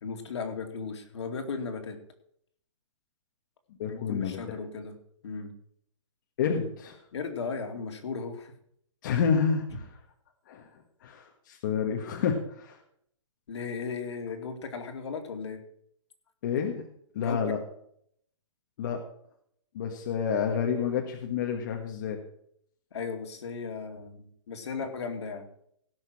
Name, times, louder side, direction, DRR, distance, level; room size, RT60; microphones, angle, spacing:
voice 1, 0.0-2.0 3.9-4.9 5.2-5.5 7.1-8.5 13.5-15.6 17.2-17.5 22.9-25.5, left 5 dB, 60° left, 6 dB, 2.5 m, -36 dB
voice 2, 3.8-4.4 6.4-7.0 9.0-9.9 10.5-10.7 11.0-12.8 16.4-16.8 17.1-17.6 18.8-19.0 19.7-22.2, left 6 dB, 40° left, 2 dB, 1.6 m, -29 dB
17.5 x 6.4 x 6.3 m, 0.68 s
hypercardioid pair, 165°, 16 cm